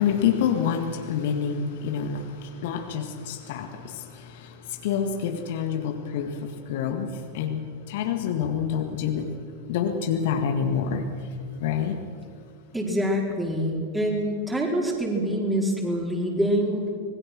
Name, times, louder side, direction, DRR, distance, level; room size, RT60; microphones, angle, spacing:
voice 1, 0.0-9.3 9.7-11.1 11.6-12.0, left 7 dB, 50° left, 5 dB, 1.8 m, -27 dB
voice 2, 12.7-16.9, equal, 5° right, 0 dB, 4.6 m, -25 dB
25.5 x 21.0 x 6.2 m, 2.2 s
figure-of-eight pair, 90°, 0 cm